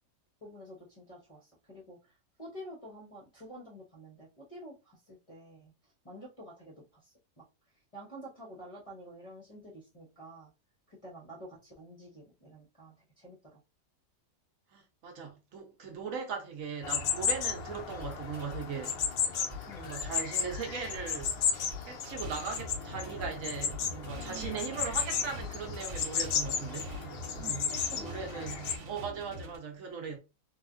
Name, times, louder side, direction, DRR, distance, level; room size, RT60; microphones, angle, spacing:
voice 1, 0.4-7.4 7.9-10.5 10.9-13.6 19.7-19.9 24.1-24.8 27.4-28.6, right 1 dB, 35° left, 0.6 m, -49 dB
voice 2, 14.7-19.0 19.7-21.4 21.8-26.9 27.3-30.2, right 5 dB, 65° right, 1.1 m, -39 dB
sound 1, 16.8-28.8, left 7 dB, 85° left, 0.5 m, -34 dB
sound 2, 17.9-27.5, left 3 dB, 15° right, 1.0 m, -47 dB
sound 3, 22.2-29.6, right 1 dB, 85° right, 1.3 m, -44 dB
3.3 x 2.4 x 2.4 m
omnidirectional pair, 1.6 m